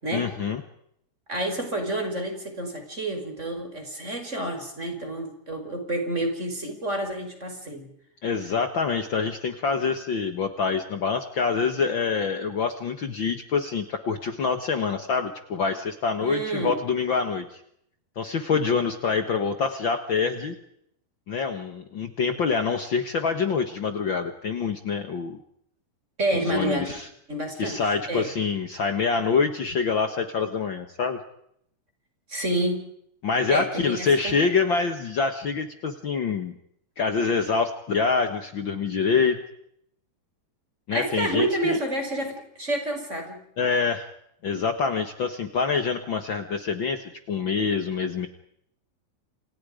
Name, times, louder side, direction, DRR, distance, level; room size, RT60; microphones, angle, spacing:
voice 1, 0.1-0.6 8.2-17.6 18.1-20.5 21.3-25.4 26.3-27.1 27.6-31.2 33.2-36.5 37.0-39.4 40.9-41.8 43.6-44.1 44.4-48.3, left 5 dB, 75° left, 7 dB, 1.1 m, -26 dB
voice 2, 1.3-7.9 16.2-16.8 26.2-26.9 27.3-28.3 32.3-32.8 33.5-34.5 40.9-43.4, right 1 dB, 15° right, 5 dB, 5.2 m, -29 dB
29.0 x 28.0 x 5.2 m, 0.72 s
omnidirectional pair, 4.7 m